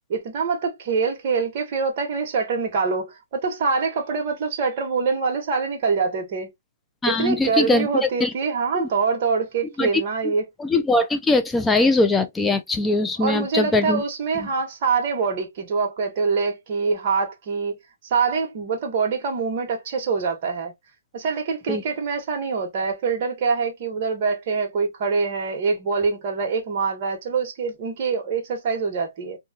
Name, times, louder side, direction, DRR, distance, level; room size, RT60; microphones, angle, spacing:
voice 1, 0.1-6.5 7.1-10.4 13.2-17.8 18.0-20.7 21.1-29.4, right 5 dB, 40° right, 1.1 m, -24 dB
voice 2, 7.0-8.3 8.7-8.9 9.8-9.9 10.2-10.3 10.6-14.0 14.4-14.5 21.7-21.8, left 2 dB, 5° left, 0.4 m, -21 dB
2.9 x 2.2 x 2.5 m
hypercardioid pair, 155°, 0 cm